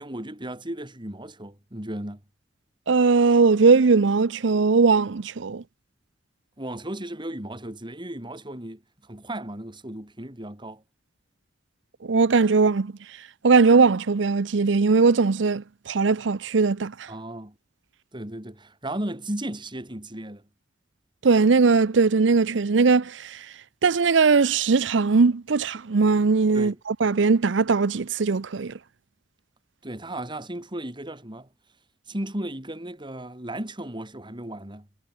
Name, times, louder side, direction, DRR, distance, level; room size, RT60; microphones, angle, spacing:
voice 1, 0.0-2.2 6.6-10.8 17.1-17.6 18.1-20.4 26.5-26.8 29.8-31.5 32.1-34.9, right 1 dB, 25° right, 3.6 m, -35 dB
voice 2, 2.9-5.6 12.0-12.9 13.4-16.9 21.2-23.4 23.8-26.7 27.0-28.7, right 4 dB, 75° right, 0.6 m, -19 dB
head